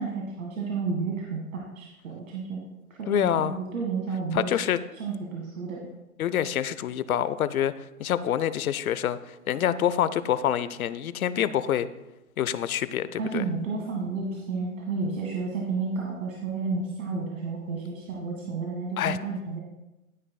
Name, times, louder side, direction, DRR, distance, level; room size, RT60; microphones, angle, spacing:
voice 1, 0.0-2.6 3.0-4.6 4.9-5.8 13.2-19.6, right 4 dB, 60° right, -2 dB, 2.0 m, -31 dB
voice 2, 3.1-3.6 4.3-4.8 6.2-7.7 8.0-11.9 12.4-13.4 19.0-19.2, left 10 dB, 70° left, 15 dB, 0.7 m, -26 dB
12.5 x 9.6 x 2.3 m, 1.0 s
hypercardioid pair, 140°, 44 cm